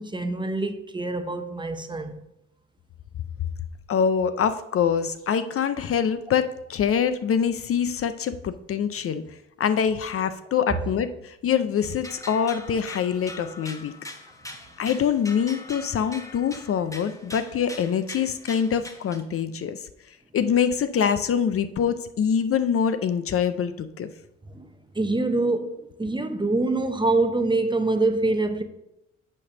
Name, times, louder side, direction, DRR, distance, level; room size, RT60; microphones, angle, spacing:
voice 1, 0.0-2.2 24.5-24.7 24.9-28.6, right 2 dB, 15° right, 0.8 m, -25 dB
voice 2, 3.9-9.2 9.6-13.9 14.8-19.9 20.3-24.1, left 7 dB, 50° left, 0.5 m, -24 dB
sound 1, 11.8-19.2, left 2 dB, 10° left, 1.0 m, -42 dB
8.5 x 3.3 x 6.5 m
cardioid pair, 90°, 30 cm